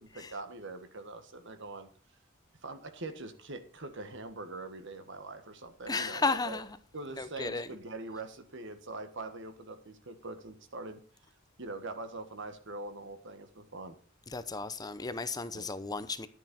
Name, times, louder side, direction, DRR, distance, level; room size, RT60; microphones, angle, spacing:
voice 1, 0.0-1.9 2.6-6.6 6.9-11.0 11.6-14.0 15.5-15.7, right 2 dB, 65° right, 1.6 m, -43 dB
voice 2, 5.9-6.8 7.2-7.7 14.3-16.3, left 3 dB, 20° left, 0.7 m, -34 dB
11.0 x 9.3 x 4.3 m
head